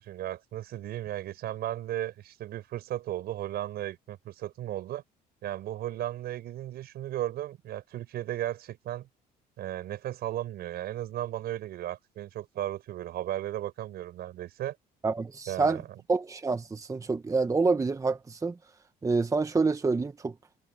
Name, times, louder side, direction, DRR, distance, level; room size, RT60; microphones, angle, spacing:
voice 1, 0.0-5.0 5.4-9.1 9.6-14.8 15.5-15.9, right 13 dB, 70° right, 5.6 m, -35 dB
voice 2, 15.0-15.8 16.1-18.5 19.0-20.3, right 4 dB, 20° right, 1.0 m, -27 dB
cardioid pair, 110°, 17 cm